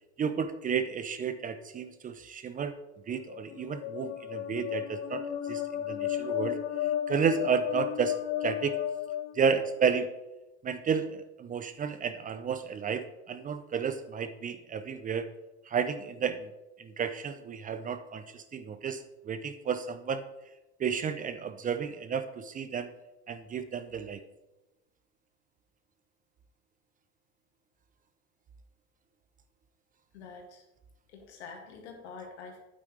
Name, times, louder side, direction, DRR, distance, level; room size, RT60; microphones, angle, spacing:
voice 1, 0.2-2.7 3.1-5.6 5.9-6.6 7.1-8.2 8.4-8.8 9.4-10.1 10.6-15.3 15.7-16.5 16.8-20.3 20.8-22.9 23.3-24.2, right 6 dB, 25° right, 11 dB, 0.6 m, -32 dB
sound 1, 3.2-10.0, left 11 dB, 40° left, 0.7 m, -34 dB
voice 2, 30.1-30.6 31.1-32.6, left 4 dB, 75° left, 1 dB, 2.3 m, -46 dB
8.9 x 8.4 x 3.3 m, 0.99 s
hypercardioid pair, 90°, 34 cm